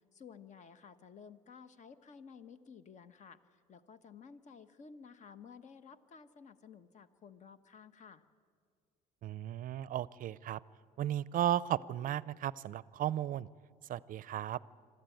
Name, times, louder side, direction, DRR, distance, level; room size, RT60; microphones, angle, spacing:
voice 1, 0.0-8.2, left 6 dB, 45° left, 12 dB, 1.1 m, -54 dB
voice 2, 9.2-10.6 11.0-13.5 13.9-14.6, right 11 dB, 55° right, 20 dB, 0.5 m, -35 dB
26.0 x 13.5 x 9.1 m, 2.1 s
cardioid pair, 110°, 17 cm